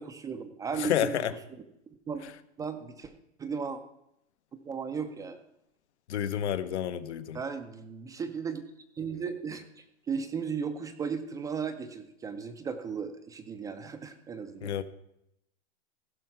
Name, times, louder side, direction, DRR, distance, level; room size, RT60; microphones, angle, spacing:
voice 1, 0.0-1.2 2.1-2.2 2.6-3.1 3.4-3.8 4.6-5.4 7.3-8.6 8.9-14.7, right 6 dB, 10° right, 8 dB, 0.4 m, -36 dB
voice 2, 0.8-1.3 6.1-7.4 14.6-14.8, left 10 dB, 80° left, 11 dB, 0.9 m, -29 dB
15.5 x 5.6 x 5.7 m, 0.80 s
hypercardioid pair, 135°, 34 cm